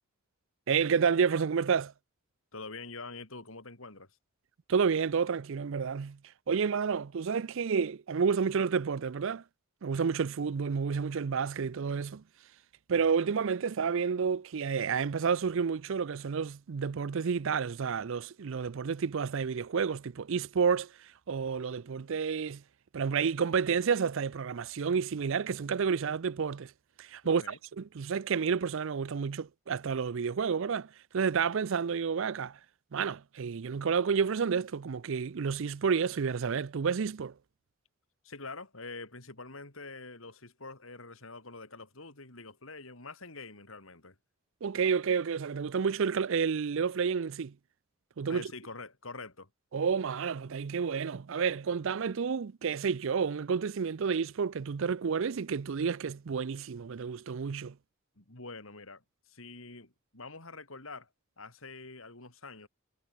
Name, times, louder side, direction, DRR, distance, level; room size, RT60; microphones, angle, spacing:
voice 1, 0.7-1.9 4.7-6.2 6.5-9.4 9.8-12.2 12.9-22.6 22.9-26.7 27.0-32.6 32.9-37.3 44.6-47.5 48.2-48.5 49.7-57.7, right 6 dB, 60° right, 0.5 m, -30 dB
voice 2, 2.5-4.1 27.2-27.6 38.2-44.1 48.3-49.5 58.2-61.1 61.4-62.7, left 3 dB, 70° left, 4.4 m, -45 dB
head